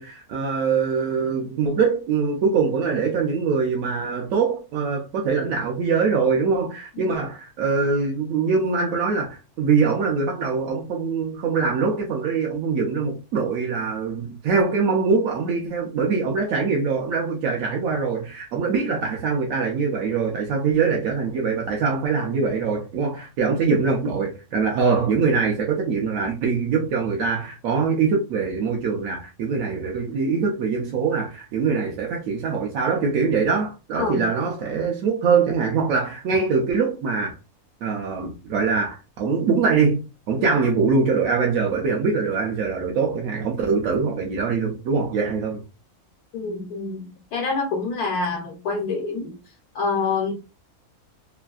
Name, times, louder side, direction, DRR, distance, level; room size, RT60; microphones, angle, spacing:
voice 1, 0.0-37.4 37.8-40.0 40.3-45.6, right 5 dB, 70° right, 1.0 m, -23 dB
voice 2, 46.3-49.3 49.7-50.3, left 4 dB, 80° left, 1.2 m, -27 dB
3.2 x 2.6 x 2.3 m
omnidirectional pair, 1.6 m